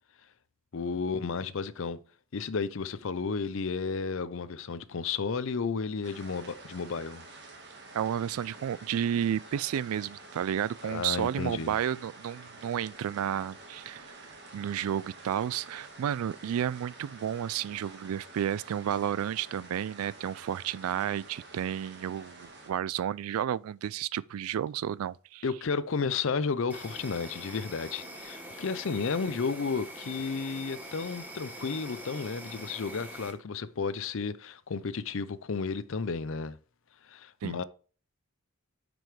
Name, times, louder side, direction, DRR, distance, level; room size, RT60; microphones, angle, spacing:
voice 1, 0.7-2.0 2.3-7.2 10.8-11.8 25.4-36.6 37.0-37.6, left 5 dB, 60° left, 0.5 m, -32 dB
sound 1, 6.0-22.7, right 3 dB, 50° right, 1.4 m, -49 dB
voice 2, 7.9-25.4 37.4-37.6, right 9 dB, 75° right, 0.3 m, -32 dB
Insect, 26.7-33.3, right 1 dB, 10° right, 1.1 m, -44 dB
9.2 x 5.2 x 3.2 m
head